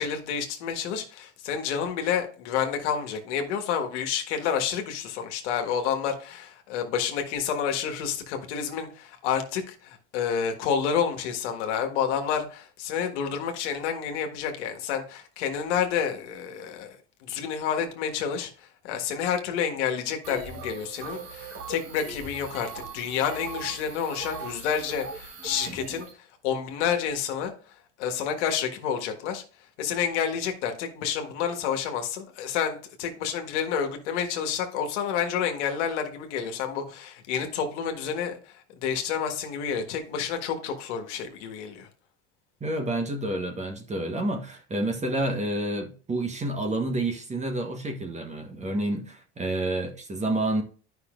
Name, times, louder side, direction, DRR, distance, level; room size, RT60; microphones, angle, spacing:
voice 1, 0.0-17.0 17.2-18.5 18.8-26.1 26.4-27.5 28.0-29.4 29.8-41.9, left 7 dB, 75° left, 1.6 m, -29 dB
sound 1, 20.2-26.1, right 3 dB, 40° right, 1.6 m, -39 dB
voice 2, 42.6-50.6, right 1 dB, 20° right, 1.3 m, -29 dB
9.8 x 5.7 x 2.5 m
supercardioid pair, 100°, 35 cm